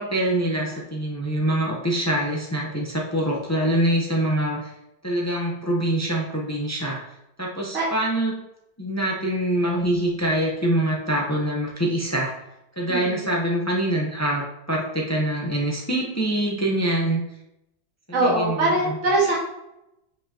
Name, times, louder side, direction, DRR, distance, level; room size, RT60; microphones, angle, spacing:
voice 1, 0.0-4.7 5.0-7.0 7.4-8.4 8.8-12.3 12.8-17.2 18.2-19.0 19.2-19.3, right 1 dB, 20° left, -2 dB, 0.4 m, -24 dB
voice 2, 12.9-13.2 18.1-19.4, right 2 dB, 40° right, -5 dB, 2.0 m, -22 dB
7.6 x 5.2 x 2.9 m, 0.87 s
omnidirectional pair, 2.0 m